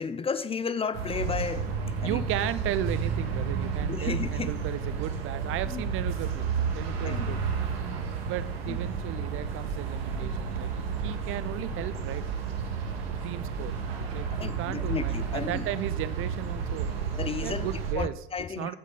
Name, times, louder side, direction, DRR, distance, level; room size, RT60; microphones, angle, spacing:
voice 1, 0.0-1.7 2.0-2.2 3.9-4.6 5.6-5.8 7.0-7.3 8.7-8.9 14.3-15.6 17.1-18.7, left 5 dB, 20° left, 0.6 m, -33 dB
sound 1, 0.9-17.9, right 5 dB, 65° right, 1.9 m, -31 dB
voice 2, 2.0-6.5 6.7-7.4 8.2-10.7 11.0-12.2 13.0-13.8 14.1-16.9 17.4-18.1 18.6-18.7, right 13 dB, 40° right, 0.6 m, -35 dB
14.0 x 8.3 x 3.8 m
figure-of-eight pair, 75°, 32 cm